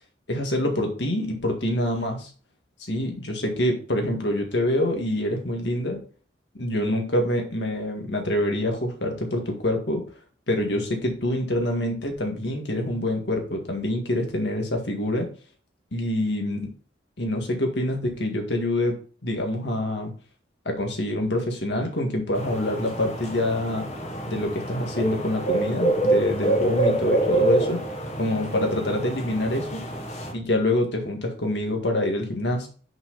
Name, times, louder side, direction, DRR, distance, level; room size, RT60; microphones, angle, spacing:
voice 1, 0.3-2.3 2.9-6.0 6.6-10.0 10.5-15.3 15.9-16.7 17.2-19.0 19.2-20.1 20.6-23.9 24.3-27.8 28.2-29.8 30.3-32.7, left 1 dB, 65° left, 3 dB, 1.8 m, -26 dB
sound 1, 22.3-30.3, right 2 dB, 35° left, 1.5 m, -26 dB
6.0 x 5.8 x 4.0 m, 0.41 s
head